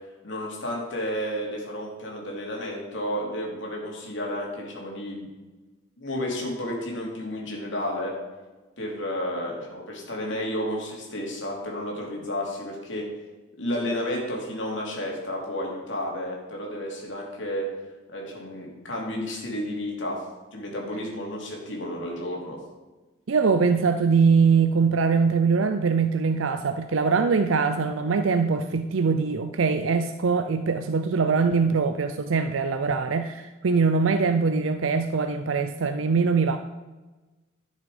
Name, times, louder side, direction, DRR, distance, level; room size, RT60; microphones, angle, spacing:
voice 1, 0.2-5.3 6.0-8.1 8.8-13.1 13.6-17.7 18.1-20.2 20.5-22.6, left 1 dB, 65° left, -2 dB, 2.9 m, -31 dB
voice 2, 23.3-36.6, right 5 dB, 80° right, 8 dB, 0.5 m, -22 dB
12.0 x 6.5 x 5.0 m, 1.2 s
head